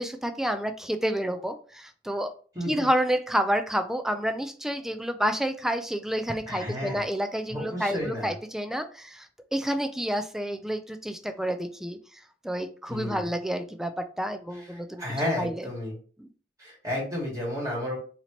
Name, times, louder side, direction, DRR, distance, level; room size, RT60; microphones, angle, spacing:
voice 1, 0.0-2.3 2.7-9.3 9.5-12.0 12.4-15.0 15.4-15.6 16.2-16.3, equal, 5° right, 8 dB, 0.3 m, -29 dB
voice 2, 2.5-2.9 6.5-7.0 7.5-8.3 12.9-13.2 15.0-16.0 16.6-18.0, left 1 dB, 20° right, -4 dB, 1.5 m, -31 dB
4.2 x 2.9 x 2.9 m, 0.42 s
head